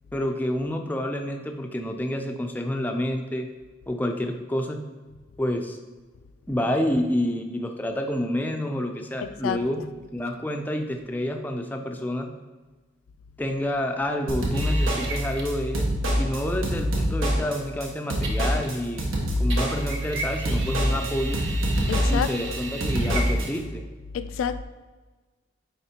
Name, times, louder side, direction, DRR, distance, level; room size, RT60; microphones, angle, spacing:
voice 1, 0.1-3.5 3.9-4.8 5.4-5.8 6.5-9.8 10.1-12.3 13.4-15.9 16.2-21.4 22.1-23.8, left 1 dB, 10° left, 0.4 m, -28 dB
voice 2, 9.2-9.6 21.9-22.6 24.1-24.6, left 7 dB, 85° left, 0.3 m, -29 dB
sound 1, 14.3-23.5, equal, 90° right, 1.4 m, -25 dB
sound 2, 14.5-15.6 18.2-19.0 19.5-23.7, right 2 dB, 65° right, 0.9 m, -36 dB
9.6 x 3.6 x 2.8 m
head